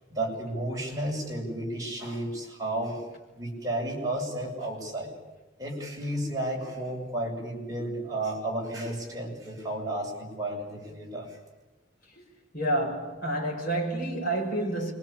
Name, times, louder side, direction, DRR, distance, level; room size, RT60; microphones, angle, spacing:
voice 1, 0.1-3.1 3.3-5.1 5.6-11.4, right 1 dB, 20° right, 7.4 m, -32 dB
voice 2, 12.5-14.9, right 1 dB, 50° left, 6.4 m, -29 dB
27.5 x 24.5 x 8.8 m
head